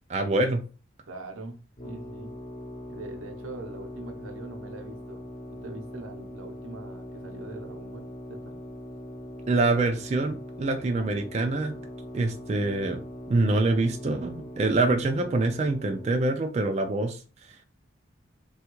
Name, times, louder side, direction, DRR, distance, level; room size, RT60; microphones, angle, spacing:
voice 1, 0.1-0.6 9.5-11.7 12.1-13.0 13.3-17.2, right 2 dB, 35° right, 0.3 m, -25 dB
voice 2, 1.1-2.3 2.9-8.6, right 2 dB, 90° right, 0.7 m, -42 dB
sound 1, 1.8-16.3, equal, 40° left, 0.8 m, -41 dB
3.4 x 2.3 x 2.9 m
head